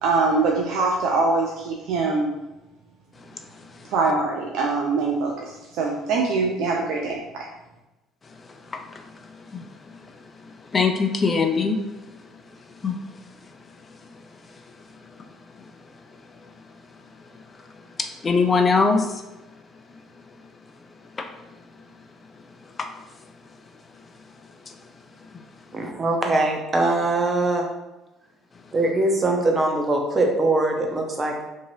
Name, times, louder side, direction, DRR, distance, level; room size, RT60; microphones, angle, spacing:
voice 1, 0.0-2.3 3.9-7.5, right 3 dB, 70° right, -1 dB, 0.4 m, -23 dB
voice 2, 10.7-11.8 12.8-12.9 18.0-19.1 21.2-21.3 22.8-22.9, left 4 dB, 30° left, 5 dB, 0.4 m, -21 dB
voice 3, 25.7-27.6 28.7-31.4, right 2 dB, 30° right, 1 dB, 0.7 m, -22 dB
2.9 x 2.7 x 2.7 m, 1.0 s
supercardioid pair, 85°, 0 cm